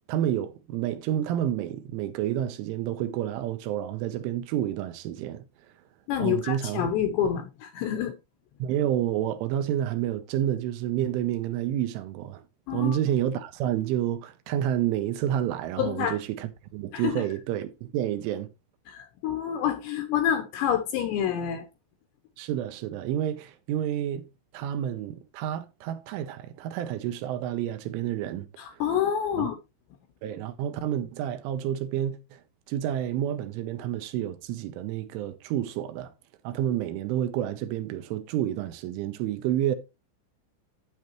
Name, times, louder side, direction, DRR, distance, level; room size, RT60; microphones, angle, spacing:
voice 1, 0.1-5.5 6.2-6.9 8.6-12.4 12.7-18.5 22.4-24.3 24.5-28.8 29.4-29.5 30.2-32.4 32.7-36.1 36.4-39.8, right 11 dB, 80° right, 3.1 m, -29 dB
voice 2, 6.1-8.2 12.7-13.0 15.8-16.2 16.9-17.2 18.9-21.6 28.6-29.6, left 9 dB, 75° left, 2.7 m, -27 dB
9.4 x 8.6 x 3.0 m
omnidirectional pair, 5.9 m